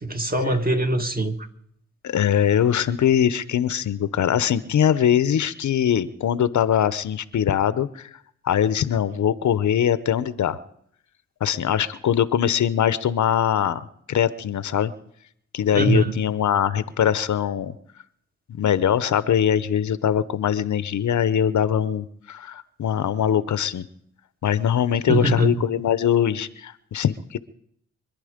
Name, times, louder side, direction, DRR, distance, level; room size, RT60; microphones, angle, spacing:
voice 1, 0.0-1.4 15.7-16.2 25.1-25.6, right 2 dB, 30° right, 5 dB, 1.9 m, -22 dB
voice 2, 2.0-8.1 8.4-10.6 11.4-13.8 14.1-14.9 15.5-17.7 18.5-23.9 24.4-27.4, left 9 dB, 75° left, 15 dB, 0.9 m, -22 dB
25.5 x 10.5 x 5.1 m, 0.69 s
cardioid pair, 65°, 30 cm